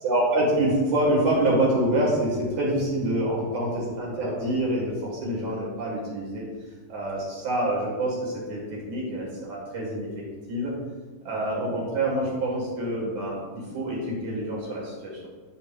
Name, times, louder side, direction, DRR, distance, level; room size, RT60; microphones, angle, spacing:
voice 1, 0.0-6.4 6.9-8.6 8.9-10.7 11.2-13.4 13.7-15.3, right 1 dB, 55° right, -3 dB, 2.4 m, -26 dB
9.4 x 8.8 x 2.5 m, 1.4 s
omnidirectional pair, 5.6 m